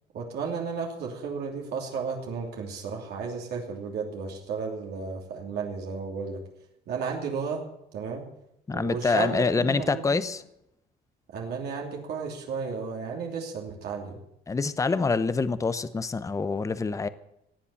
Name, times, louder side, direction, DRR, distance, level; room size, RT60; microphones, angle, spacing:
voice 1, 0.1-6.4 6.9-7.6 7.9-8.3 8.7-10.2 11.3-14.2, right 5 dB, 75° right, 0 dB, 2.9 m, -33 dB
voice 2, 8.7-10.4 14.5-17.1, left 4 dB, 20° left, 14 dB, 0.8 m, -26 dB
17.5 x 7.7 x 8.5 m, 0.80 s
cardioid pair, 110°, 17 cm